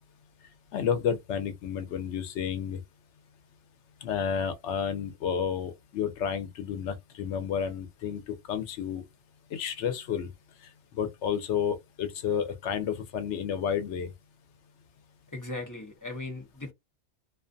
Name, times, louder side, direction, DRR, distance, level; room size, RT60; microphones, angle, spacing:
voice 1, 0.7-2.8 4.0-9.0 9.5-10.3 10.9-14.1, left 8 dB, 90° left, 0.9 m, -31 dB
voice 2, 15.3-16.7, left 2 dB, 20° left, 0.6 m, -38 dB
2.4 x 2.3 x 2.5 m
omnidirectional pair, 1.2 m